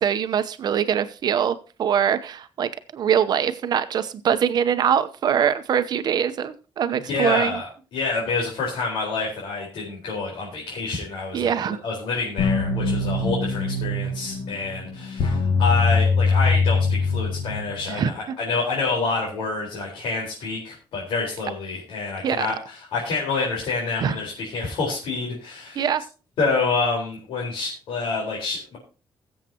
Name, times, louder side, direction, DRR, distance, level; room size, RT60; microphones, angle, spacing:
voice 1, 0.0-7.6 11.3-11.8 17.9-18.4 22.2-22.5 24.0-24.2 25.8-26.0, right 8 dB, 50° right, 11 dB, 0.8 m, -23 dB
voice 2, 7.1-25.9 26.4-28.8, left 3 dB, 85° left, -4 dB, 4.4 m, -27 dB
sound 1, 12.4-18.0, left 3 dB, 70° left, 1.8 m, -22 dB
21.5 x 7.5 x 2.9 m, 0.36 s
cardioid pair, 170°, 9 cm